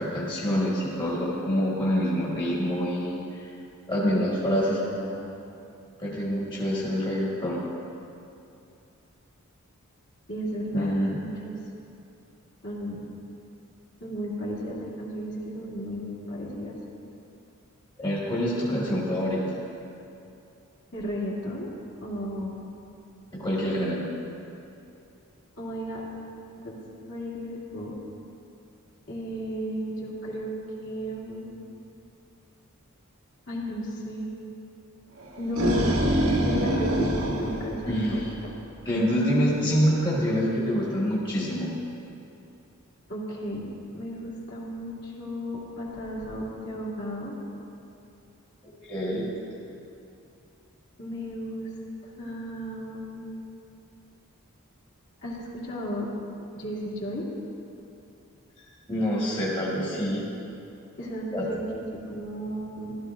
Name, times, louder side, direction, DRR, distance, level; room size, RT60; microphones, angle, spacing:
voice 1, 0.0-3.5 3.9-4.8 6.0-7.6 10.7-11.2 18.0-19.4 23.3-24.1 37.9-38.3 38.8-41.7 48.6-49.3 58.9-60.3 61.3-61.5, equal, 20° left, -7 dB, 1.5 m, -26 dB
voice 2, 4.1-5.2 10.3-11.6 12.6-13.1 14.0-16.7 20.9-21.7 22.0-22.6 25.6-26.0 26.6-26.8 27.1-28.0 29.1-31.5 33.5-34.3 35.4-35.9 36.2-38.2 38.5-38.6 39.4-39.7 43.1-43.7 43.9-47.4 51.0-51.7 52.2-53.3 55.2-56.1 56.5-57.2 61.0-63.0, equal, 55° left, -6 dB, 2.4 m, -34 dB
sound 1, 35.2-38.5, equal, 75° right, 1.4 m, -25 dB
15.5 x 12.5 x 2.5 m, 2.7 s
head